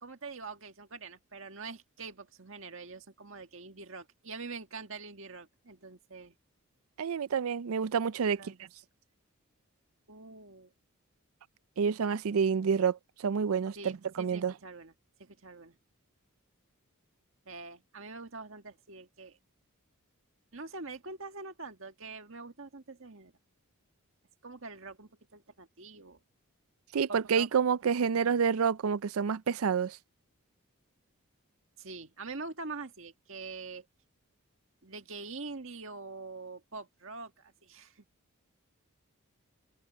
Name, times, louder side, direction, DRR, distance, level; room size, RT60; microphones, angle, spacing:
voice 1, 0.0-6.4 8.3-8.6 10.1-10.7 13.8-14.9 15.2-15.8 17.5-19.4 20.5-23.3 24.4-26.2 27.1-27.5 27.8-27.9 31.8-33.9 34.8-38.0, right 3 dB, 60° right, 1.8 m, -44 dB
voice 2, 7.0-8.5 11.8-14.5 26.9-30.0, right 6 dB, 80° right, 0.4 m, -28 dB
open air
head